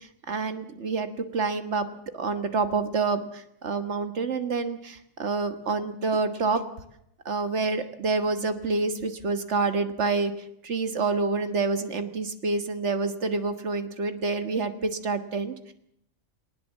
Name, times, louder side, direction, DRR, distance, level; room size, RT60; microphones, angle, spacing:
voice 1, 0.3-1.9 2.1-6.6 7.3-10.3 10.6-15.7, right 4 dB, 60° right, 8 dB, 1.7 m, -27 dB
20.0 x 19.0 x 7.3 m, 0.76 s
omnidirectional pair, 1.4 m